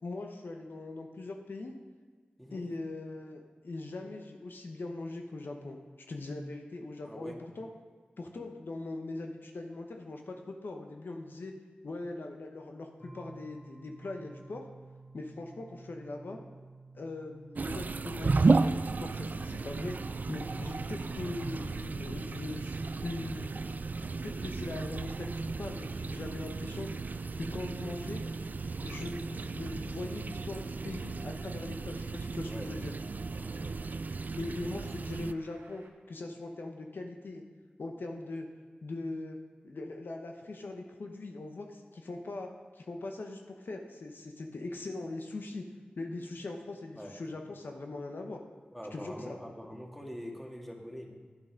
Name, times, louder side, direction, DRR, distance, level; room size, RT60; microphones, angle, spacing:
voice 1, 0.0-1.7 2.5-5.8 6.1-7.7 8.2-11.5 11.8-14.6 15.1-16.4 16.9-20.0 20.3-22.8 23.0-23.5 24.2-26.9 27.4-28.2 28.8-32.9 34.4-37.4 37.8-38.5 38.8-39.4 39.6-42.5 42.7-45.7 46.0-48.4 48.9-49.4, left 2 dB, 75° left, 3 dB, 0.9 m, -41 dB
voice 2, 7.0-7.4 32.4-32.7 33.2-33.8 47.0-47.2 48.7-51.2, equal, 5° left, 0 dB, 1.8 m, -44 dB
sound 1, 13.0-29.5, right 3 dB, 20° left, 2.9 m, -53 dB
sound 2, 17.5-35.3, right 3 dB, 55° right, 0.3 m, -34 dB
Traffic noise roadway noise, 18.7-35.9, right 2 dB, 90° right, 1.1 m, -59 dB
10.0 x 7.6 x 5.2 m, 1.5 s
wide cardioid pair, 55°, 4 cm